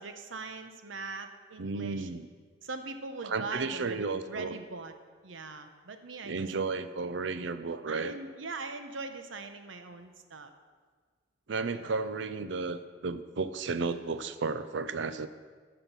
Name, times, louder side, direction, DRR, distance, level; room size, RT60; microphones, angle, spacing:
voice 1, 0.0-2.1 2.6-4.9 5.2-6.5 7.9-10.5 11.7-11.9, right 3 dB, 85° right, 8 dB, 0.8 m, -41 dB
voice 2, 1.6-2.3 3.2-4.6 6.2-8.2 11.5-15.3, right 4 dB, 65° right, 11 dB, 0.5 m, -33 dB
13.0 x 6.0 x 5.4 m, 1.5 s
head